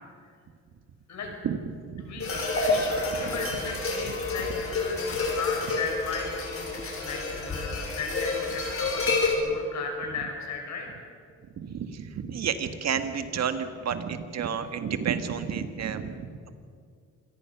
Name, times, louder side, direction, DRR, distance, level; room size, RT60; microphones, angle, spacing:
voice 1, 2.0-2.3 2.6-6.7 7.0-11.1, left 4 dB, 65° left, 2 dB, 6.0 m, -36 dB
sound 1, 2.2-9.3, left 3 dB, 50° left, 6.0 m, -29 dB
voice 2, 11.6-16.5, right 7 dB, 60° right, 9 dB, 1.8 m, -31 dB
26.5 x 17.5 x 6.0 m, 2.2 s
cardioid pair, 90°, 30 cm